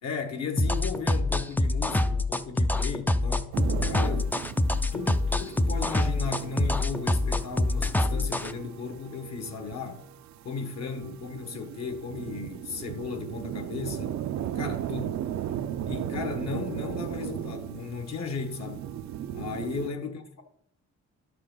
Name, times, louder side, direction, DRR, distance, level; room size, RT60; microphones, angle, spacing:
voice 1, 0.0-3.5 3.9-4.3 4.9-10.0 10.4-14.3 14.5-15.2 15.9-18.8 19.3-20.4, left 5 dB, 60° left, 1.4 m, -35 dB
sound 1, 0.6-8.5, left 2 dB, 5° left, 0.4 m, -25 dB
sound 2, 3.5-19.9, right 11 dB, 65° right, 0.6 m, -37 dB
11.5 x 6.7 x 3.8 m
cardioid pair, 90°, 30 cm